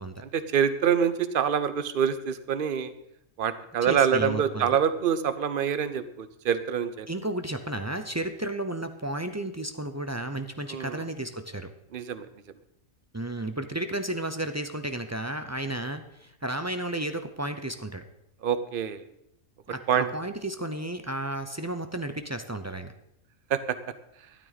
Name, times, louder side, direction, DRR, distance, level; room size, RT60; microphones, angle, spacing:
voice 1, 0.2-2.9 3.4-7.1 10.7-11.0 11.9-12.3 18.4-19.0 19.9-20.1 23.5-23.8, right 8 dB, 45° right, 12 dB, 0.8 m, -26 dB
voice 2, 3.8-4.7 7.1-11.7 13.1-18.0 19.7-22.9, right 1 dB, 25° right, 8 dB, 0.3 m, -33 dB
12.5 x 12.0 x 4.1 m, 0.78 s
omnidirectional pair, 1.5 m